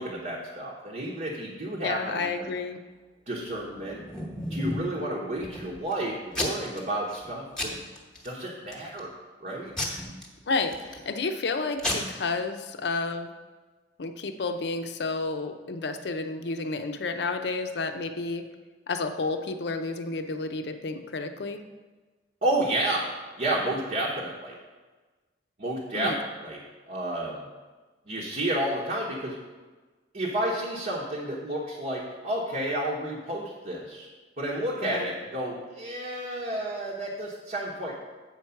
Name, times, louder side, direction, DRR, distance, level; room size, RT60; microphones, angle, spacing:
voice 1, 0.0-2.5 3.3-4.0 4.4-7.7 8.2-9.1 9.4-9.7 22.4-24.6 25.6-26.2 26.4-26.6 26.9-27.4 28.1-29.4 30.1-34.1 34.4-38.0, right 1 dB, 50° right, -4 dB, 1.0 m, -31 dB
voice 2, 1.8-2.8 9.9-10.0 10.5-13.3 14.0-18.5 18.9-21.6 25.9-26.2 34.8-35.1, left 3 dB, 65° left, 7 dB, 0.6 m, -31 dB
Packing tape duct tape / Tearing, 3.6-5.0 5.4-5.9 6.3-6.8 7.1-7.3 7.6-8.3 8.7-9.1 9.8-11.1 11.5-11.6 11.8-11.9, left 1 dB, 5° left, 1.1 m, -33 dB
8.1 x 4.5 x 5.7 m, 1.3 s
head